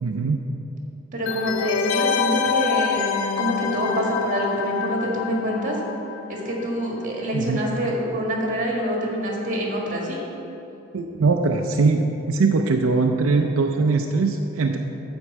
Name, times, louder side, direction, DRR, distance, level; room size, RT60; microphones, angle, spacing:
voice 1, 0.0-0.4 7.3-7.6 10.9-14.8, right 4 dB, 90° right, 4 dB, 0.5 m, -21 dB
voice 2, 1.1-3.0 3.4-5.8 6.3-10.2, right 1 dB, 40° right, -2 dB, 1.8 m, -26 dB
sound 1, 1.3-6.7 7.0-7.1, left 7 dB, 70° left, 0.5 m, -26 dB
9.6 x 4.5 x 7.2 m, 2.9 s
head